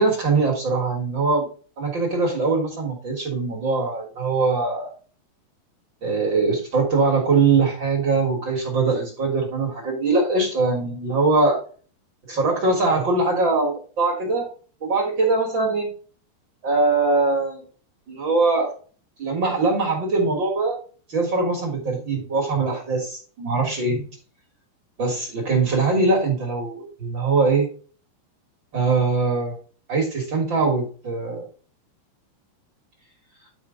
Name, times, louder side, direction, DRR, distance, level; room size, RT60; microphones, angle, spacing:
voice 1, 0.0-1.5 1.8-4.9 6.0-11.6 12.3-14.5 14.8-15.9 16.6-17.6 18.1-18.7 19.2-20.8 21.1-24.1 25.0-27.7 28.7-29.5 29.9-31.4, right 3 dB, 45° right, 0 dB, 1.5 m, -22 dB
11.0 x 4.8 x 3.8 m, 0.40 s
omnidirectional pair, 4.9 m